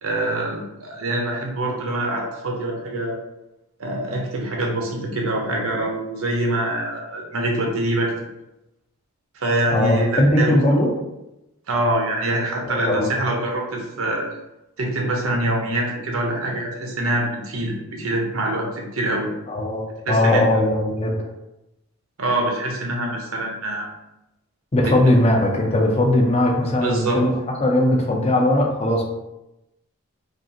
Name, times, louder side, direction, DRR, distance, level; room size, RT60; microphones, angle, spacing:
voice 1, 0.0-3.2 3.8-8.1 9.3-10.8 11.7-14.2 14.8-19.3 20.1-20.4 22.2-23.9 24.8-25.0 26.8-27.2, right 1 dB, 75° right, 0 dB, 0.9 m, -24 dB
voice 2, 9.7-10.9 12.7-13.1 19.5-21.1 24.7-27.3 27.6-29.0, left 1 dB, 30° left, 1 dB, 0.6 m, -19 dB
5.1 x 2.5 x 2.8 m, 0.92 s
head